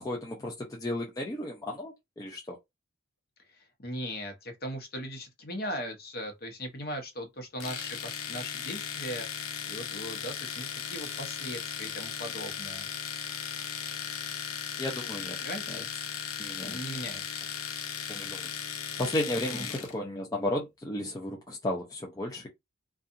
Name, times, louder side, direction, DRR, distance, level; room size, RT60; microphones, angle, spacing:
voice 1, 0.0-2.6 14.8-15.4 15.7-15.8 16.4-16.8 18.1-18.5 19.0-22.5, left 1 dB, 15° left, 0.4 m, -34 dB
voice 2, 3.5-9.3 9.7-12.9 15.4-15.9 16.6-17.4 19.5-19.7, equal, 45° left, 0.8 m, -39 dB
Domestic sounds home sounds, 7.6-19.9, left 8 dB, 85° left, 0.6 m, -37 dB
2.7 x 2.3 x 2.4 m
head